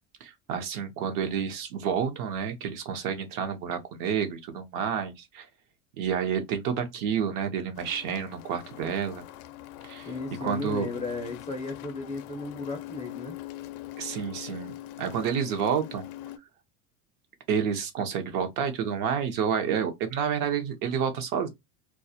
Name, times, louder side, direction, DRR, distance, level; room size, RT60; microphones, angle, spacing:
voice 1, 0.2-5.5 6.0-9.2 9.8-10.1 10.4-10.9 14.0-16.1 17.5-21.5, right 7 dB, 50° right, 0.6 m, -29 dB
sound 1, 7.7-16.4, left 15 dB, 80° left, 0.5 m, -43 dB
voice 2, 10.0-13.4, left 3 dB, 15° left, 0.4 m, -35 dB
2.2 x 2.0 x 2.6 m
supercardioid pair, 125°, 42 cm